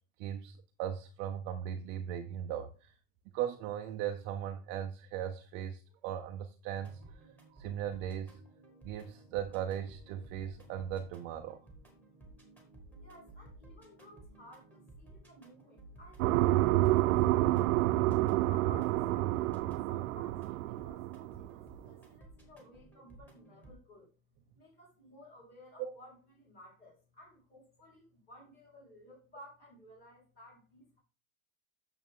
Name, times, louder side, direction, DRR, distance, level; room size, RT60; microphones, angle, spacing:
voice 1, 0.2-2.9 3.3-8.4 8.8-11.6 25.8-25.9, right 10 dB, 30° right, 5 dB, 0.4 m, -38 dB
sound 1, 6.8-23.7, right 2 dB, 5° left, 1.8 m, -56 dB
voice 2, 13.0-17.8 18.5-24.1 24.5-31.0, left 1 dB, 20° left, -2 dB, 4.3 m, -56 dB
sound 2, 16.2-21.6, right 16 dB, 85° right, 0.6 m, -28 dB
8.7 x 6.9 x 3.6 m, 0.34 s
supercardioid pair, 175°, 41 cm